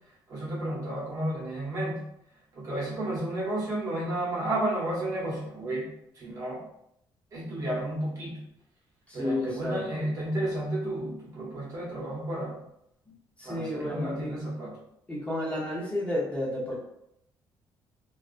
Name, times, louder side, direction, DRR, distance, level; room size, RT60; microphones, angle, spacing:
voice 1, 0.3-2.0 2.5-5.9 6.2-6.6 7.3-8.4 9.1-12.6 13.4-14.7, right 1 dB, 40° right, -5 dB, 0.9 m, -32 dB
voice 2, 9.1-9.9 13.4-14.4 15.1-16.7, left 1 dB, 15° left, -7 dB, 0.8 m, -31 dB
2.3 x 2.3 x 2.4 m, 0.78 s
cardioid pair, 140°, 9 cm